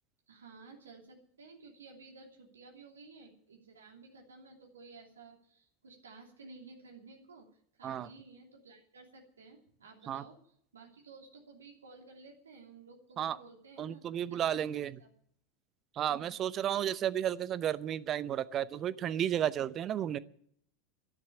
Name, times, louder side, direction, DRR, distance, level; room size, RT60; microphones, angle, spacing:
voice 1, 0.3-15.1 16.1-16.4, right 4 dB, 75° right, 1 dB, 2.9 m, -54 dB
voice 2, 13.8-14.9 16.0-20.2, right 10 dB, 35° right, 17 dB, 0.7 m, -33 dB
12.0 x 11.0 x 10.0 m, 0.63 s
figure-of-eight pair, 85°, 0 cm